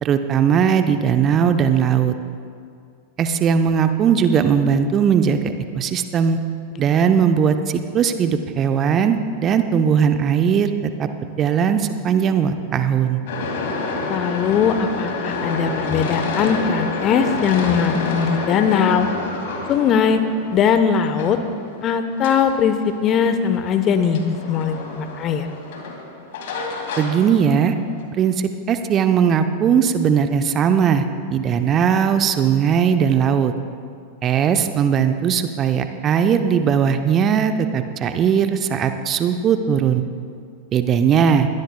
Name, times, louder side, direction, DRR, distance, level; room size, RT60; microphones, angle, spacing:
voice 1, 0.0-2.1 3.2-6.4 6.8-10.7 11.0-11.1 11.4-13.2 27.0-27.8 28.2-33.5 34.2-40.0 40.7-41.5, right 7 dB, 30° right, 8 dB, 0.7 m, -18 dB
voice 2, 6.7-7.1 14.1-19.1 19.7-20.2 20.5-21.4 21.8-25.5, left 7 dB, 30° left, 9 dB, 0.9 m, -20 dB
sound 1, 13.3-28.0, left 3 dB, 55° left, 2.3 m, -29 dB
22.0 x 17.0 x 2.3 m, 2.3 s
figure-of-eight pair, 90°, 0 cm